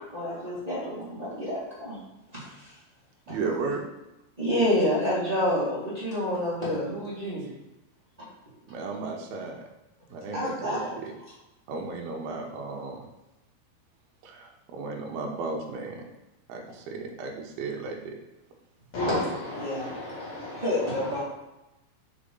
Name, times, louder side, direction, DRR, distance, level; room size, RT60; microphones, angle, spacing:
voice 1, 0.1-2.0 2.3-2.7 3.3-3.4 4.4-7.5 8.2-8.3 10.3-10.9 19.0-19.2 19.5-19.9 20.5-21.2, left 1 dB, 30° right, -11 dB, 0.7 m, -28 dB
voice 2, 3.3-3.8 8.7-9.6 10.1-11.0 11.7-13.1 14.2-16.0 16.5-18.1, right 4 dB, 75° right, 1 dB, 2.5 m, -34 dB
voice 3, 18.9-21.2, left 2 dB, 50° left, -8 dB, 2.6 m, -34 dB
6.1 x 4.9 x 3.8 m, 0.96 s
omnidirectional pair, 5.0 m